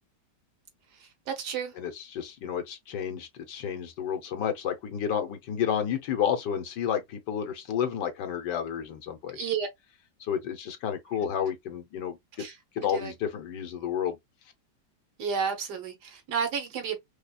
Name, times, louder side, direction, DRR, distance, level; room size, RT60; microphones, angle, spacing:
voice 1, 1.0-1.7 9.3-9.7 12.4-12.6 12.9-13.1 15.2-17.0, right 6 dB, 70° right, 1.5 m, -31 dB
voice 2, 1.8-9.4 10.2-12.4 12.7-14.2, left 8 dB, 80° left, 1.4 m, -31 dB
5.1 x 2.3 x 2.3 m
omnidirectional pair, 1.9 m